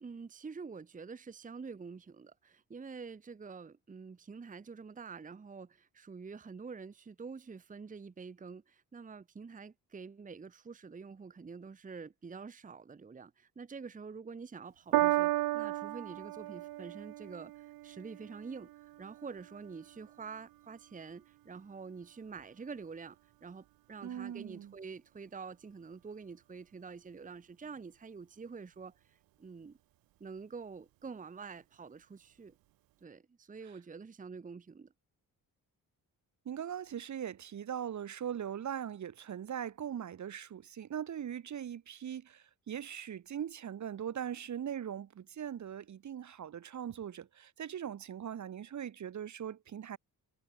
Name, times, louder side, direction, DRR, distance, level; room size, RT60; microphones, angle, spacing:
voice 1, 0.0-29.8 30.2-32.6 33.0-34.9, right 5 dB, 20° right, 1.0 m, -47 dB
Piano, 14.9-21.5 22.3-22.4, right 16 dB, 80° right, 0.7 m, -35 dB
voice 2, 24.0-24.7 36.4-50.0, right 9 dB, 55° right, 1.6 m, -40 dB
cardioid pair, 115°, 35 cm